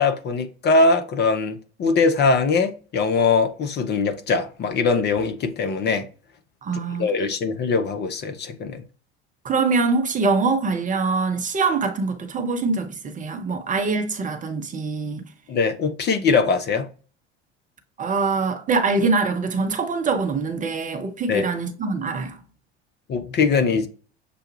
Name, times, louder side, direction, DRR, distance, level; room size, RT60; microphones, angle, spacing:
voice 1, 0.0-6.0 7.0-8.8 15.5-16.9 21.3-21.4 23.1-23.9, left 4 dB, 30° left, 0.7 m, -21 dB
voice 2, 6.6-7.1 9.4-15.2 18.0-22.4, right 4 dB, 25° right, 0.6 m, -24 dB
6.8 x 2.3 x 3.1 m
figure-of-eight pair, 70°, 33 cm